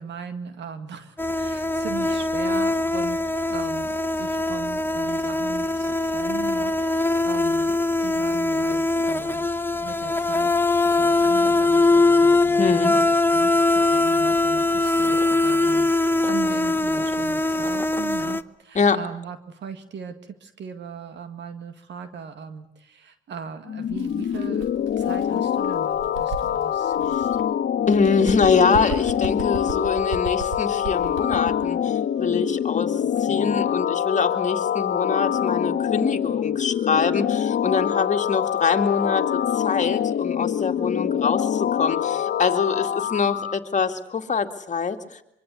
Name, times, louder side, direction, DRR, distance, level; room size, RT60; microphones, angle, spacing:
voice 1, 0.0-3.2 3.5-9.5 9.7-10.5 10.8-24.7 25.0-27.3 33.2-33.6, right 6 dB, 65° right, 9 dB, 2.0 m, -38 dB
sound 1, 1.2-18.4, left 2 dB, 10° left, 0.9 m, -22 dB
voice 2, 12.6-13.0 18.7-19.0 27.1-27.2 27.9-45.2, left 5 dB, 40° left, 5 dB, 2.4 m, -24 dB
sound 2, 23.7-43.6, left 9 dB, 60° left, 1.5 m, -25 dB
Bird, 23.9-27.5 27.8-31.7, right 6 dB, 80° right, 3.0 m, -37 dB
24.5 x 24.0 x 8.3 m, 0.79 s
cardioid pair, 90°, 20 cm